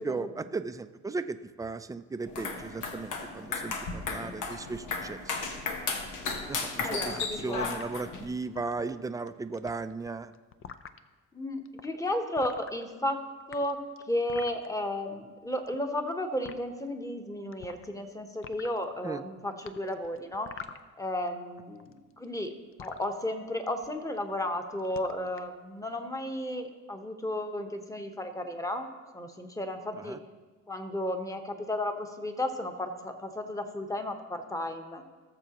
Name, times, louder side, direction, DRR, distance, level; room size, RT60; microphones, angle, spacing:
voice 1, 0.0-5.4 6.5-10.3 19.0-19.2 29.9-30.2, right 3 dB, 10° right, 10 dB, 0.4 m, -36 dB
sound 1, 2.3-8.2, left 4 dB, 80° left, 1.3 m, -35 dB
voice 2, 6.8-7.6 11.3-13.2 13.5-13.8 14.1-20.5 21.0-22.5 22.8-28.9 29.1-30.2 30.7-35.0, left 1 dB, 10° left, 5 dB, 1.1 m, -33 dB
sound 2, 7.1-7.8 8.4-9.3 9.5-11.0 11.7-11.9 12.4-13.1 13.4-14.7 15.5-16.1 16.5-16.6 17.5-18.1 18.3-18.8 19.7-21.3 21.6-23.1 23.7-23.9 24.2-24.5 24.8-25.5, left 7 dB, 45° left, 0.6 m, -46 dB
18.5 x 6.9 x 3.0 m, 1.3 s
cardioid pair, 90°, 30 cm